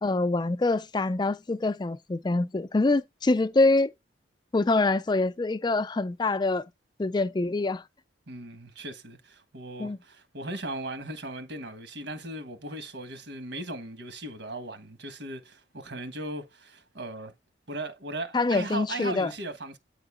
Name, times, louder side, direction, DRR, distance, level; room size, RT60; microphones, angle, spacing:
voice 1, 0.0-3.9 4.5-6.6 7.0-7.8 9.8-10.0 18.3-19.3, left 2 dB, 25° left, 0.4 m, -25 dB
voice 2, 8.3-17.3 17.7-19.8, right 1 dB, 70° right, 1.3 m, -37 dB
9.0 x 3.8 x 3.6 m
head